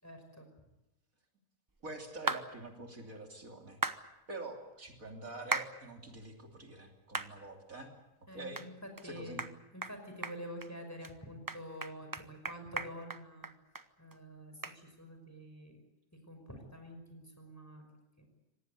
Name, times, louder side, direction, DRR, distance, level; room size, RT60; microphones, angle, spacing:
voice 1, 0.0-0.5 8.3-9.4 9.7-13.5 14.0-15.8 16.1-17.8 18.2-18.3, equal, 10° left, 4 dB, 5.6 m, -48 dB
voice 2, 1.8-3.8 4.3-7.9 8.3-8.7 9.0-9.4, right 2 dB, 70° right, 2 dB, 3.5 m, -46 dB
sound 1, 2.3-2.4 3.8-4.0 5.5-5.7 6.2-6.3 7.1-7.3 7.8-7.9 8.5-8.7 9.0-9.1 9.4-9.5 9.8-9.9 10.2-10.7 11.0-11.1 11.5-13.8 14.1-14.2 14.6-14.8, right 2 dB, 15° right, 0.9 m, -36 dB
26.0 x 19.0 x 8.3 m, 1.0 s
omnidirectional pair, 1.5 m